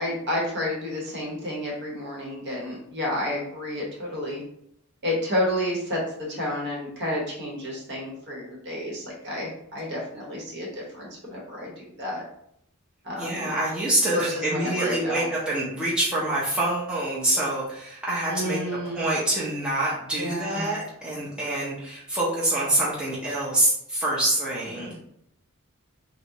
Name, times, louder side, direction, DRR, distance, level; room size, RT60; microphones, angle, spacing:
voice 1, 0.0-4.4 5.0-12.2 13.0-13.5 14.1-15.3 18.3-19.1 20.1-20.7, left 1 dB, 50° right, -3 dB, 0.9 m, -30 dB
voice 2, 13.2-18.6 18.9-24.9, right 1 dB, 5° right, -8 dB, 0.6 m, -26 dB
3.5 x 2.0 x 2.7 m, 0.74 s
head